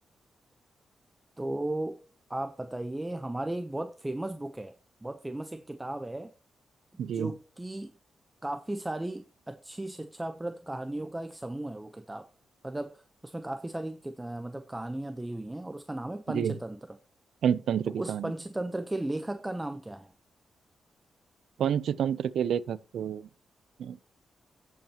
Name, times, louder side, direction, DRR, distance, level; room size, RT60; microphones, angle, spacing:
voice 1, 1.4-2.0 2.3-4.7 5.0-6.3 7.1-7.9 8.4-12.3 12.6-17.0 17.9-20.1, right 1 dB, 10° right, 0.7 m, -36 dB
voice 2, 7.0-7.3 16.3-16.5 17.4-18.3 21.6-23.2 23.8-24.0, right 8 dB, 80° right, 0.5 m, -29 dB
14.5 x 8.0 x 2.9 m
cardioid pair, 95°, 0 cm